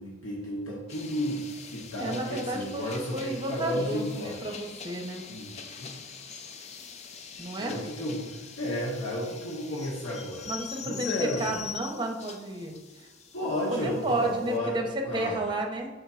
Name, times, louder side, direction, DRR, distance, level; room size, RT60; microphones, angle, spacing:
voice 1, 0.0-4.6 5.3-5.9 7.6-10.5 10.8-11.5 13.3-15.4, left 1 dB, 75° left, -5 dB, 1.2 m, -33 dB
sound 1, 0.9-14.6, left 7 dB, 35° left, 0.4 m, -44 dB
voice 2, 1.9-5.2 7.4-7.8 10.5-13.1 13.7-16.0, right 1 dB, 25° right, 2 dB, 0.8 m, -32 dB
5.5 x 3.6 x 5.6 m, 1.2 s
head